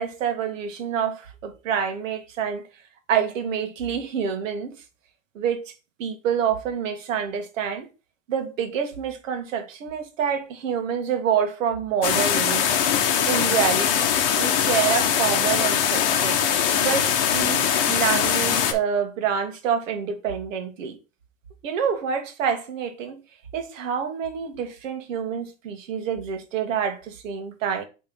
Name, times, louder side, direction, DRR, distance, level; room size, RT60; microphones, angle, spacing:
voice 1, 0.0-2.6 3.1-4.7 5.3-5.7 6.0-7.9 8.3-12.8 13.3-16.4 16.8-21.0 21.6-23.2 23.5-27.8, right 7 dB, 70° right, 1.6 m, -27 dB
sound 1, 12.0-18.7, left 8 dB, 45° left, 0.9 m, -22 dB
5.3 x 3.4 x 5.4 m
supercardioid pair, 180°, 40 cm